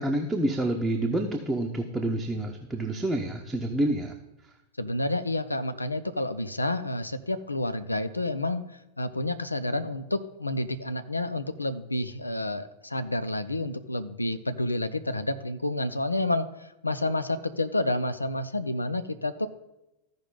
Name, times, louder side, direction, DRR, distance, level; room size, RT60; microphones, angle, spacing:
voice 1, 0.0-4.1, right 1 dB, 5° right, 1 dB, 0.8 m, -28 dB
voice 2, 4.8-8.6 9.0-19.5, left 1 dB, 85° left, 10 dB, 0.6 m, -29 dB
14.5 x 5.2 x 3.9 m, 0.93 s
figure-of-eight pair, 90°, 0 cm